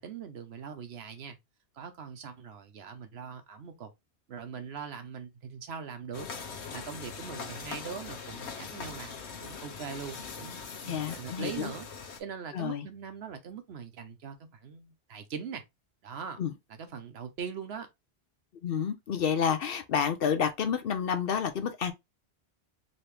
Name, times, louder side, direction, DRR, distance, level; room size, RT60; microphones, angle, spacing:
voice 1, 0.0-1.4 1.7-3.9 4.3-6.3 6.7-11.9 12.2-15.6 16.0-16.4 16.8-17.9, right 6 dB, 70° right, 1.0 m, -41 dB
sound 1, 6.1-12.2, left 5 dB, 80° left, 1.2 m, -41 dB
voice 2, 10.9-11.7 12.5-12.8 16.4-16.5 18.6-21.9, left 7 dB, 65° left, 0.8 m, -29 dB
4.1 x 2.8 x 3.2 m
omnidirectional pair, 1.1 m